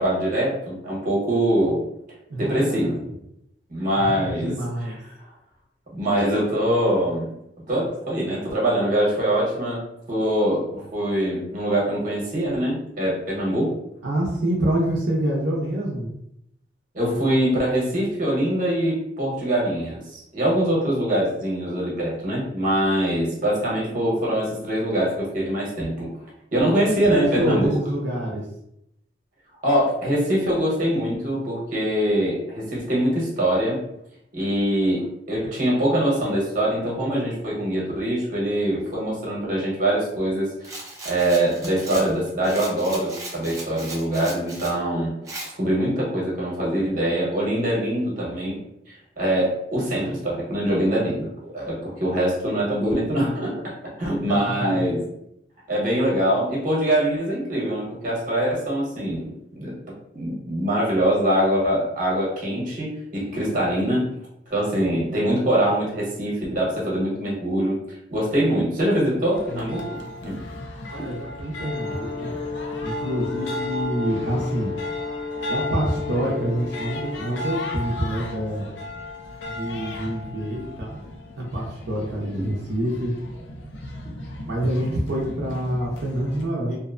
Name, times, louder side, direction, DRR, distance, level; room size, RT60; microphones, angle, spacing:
voice 1, 0.0-1.8 2.4-2.9 3.7-4.5 5.9-7.3 7.7-9.8 10.1-13.7 16.9-26.1 26.5-27.7 29.6-33.8 34.3-40.7 41.0-45.1 45.6-48.6 48.9-53.7 54.0-55.0 55.7-59.7 60.1-64.1 64.5-67.8 68.1-70.4 82.3-82.5, right 1 dB, 50° right, -4 dB, 1.0 m, -23 dB
voice 2, 2.3-2.9 4.0-5.0 14.0-16.1 23.2-23.3 27.1-28.5 54.3-54.9 70.9-72.3 72.8-74.7 75.5-78.6 79.5-81.0 81.4-83.1 84.5-86.8, right 1 dB, 90° right, -4 dB, 0.6 m, -26 dB
Rattle, 40.6-44.8 45.3-45.5, right 2 dB, 20° right, 0.5 m, -37 dB
sound 1, 69.3-86.4, left 1 dB, 85° left, 0.5 m, -36 dB
Brass instrument, 71.6-77.6, left 5 dB, 65° left, 0.9 m, -33 dB
2.7 x 2.1 x 2.4 m, 0.78 s
head